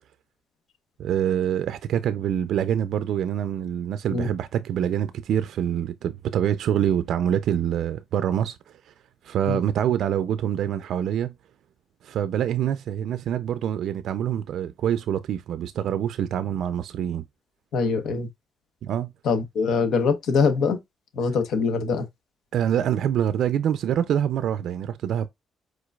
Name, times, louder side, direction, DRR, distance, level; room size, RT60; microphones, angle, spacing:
voice 1, 1.0-8.6 8.9-9.0 9.2-11.3 12.0-17.2 18.8-19.1 22.5-25.3, right 9 dB, 75° right, 0.4 m, -25 dB
voice 2, 17.7-18.3 19.2-20.8 21.1-22.0, left 5 dB, 80° left, 1.0 m, -23 dB
5.0 x 3.8 x 2.3 m
cardioid pair, 90°, 0 cm